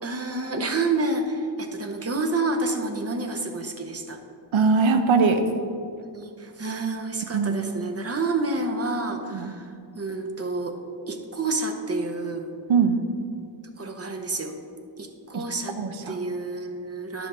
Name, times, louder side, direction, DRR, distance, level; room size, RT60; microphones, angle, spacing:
voice 1, 0.0-4.2 6.1-10.8 11.1-12.5 13.8-14.5 15.0-15.8 16.1-17.3, right 2 dB, 30° right, 4 dB, 0.7 m, -29 dB
voice 2, 4.5-5.4 7.3-7.6 9.3-9.5 12.7-13.0 15.3-15.4 15.8-16.2, right 5 dB, 70° right, 7 dB, 0.8 m, -21 dB
10.5 x 5.6 x 4.2 m, 2.4 s
wide cardioid pair, 140°, 49 cm